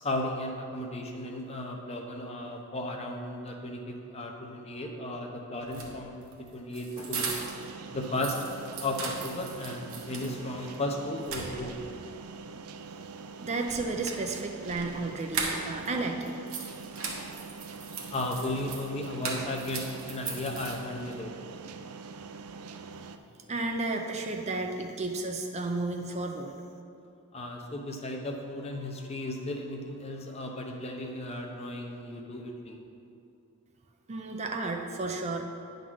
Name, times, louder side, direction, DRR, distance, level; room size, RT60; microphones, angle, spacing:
voice 1, 0.0-7.3 7.9-8.4 8.8-11.7 18.1-21.3 27.3-32.8, left 1 dB, 30° left, 2 dB, 0.7 m, -35 dB
sound 1, 5.6-7.7 8.0-10.4 10.7-10.8 11.2-12.0 13.6-15.9 16.2-21.1, right 4 dB, 65° right, 1.1 m, -38 dB
sound 2, 7.2-23.2, right 4 dB, 85° right, 0.4 m, -44 dB
voice 2, 13.4-16.3 23.5-26.5 34.1-35.4, right 3 dB, 30° right, 3 dB, 0.4 m, -32 dB
9.6 x 4.0 x 6.1 m, 2.6 s
head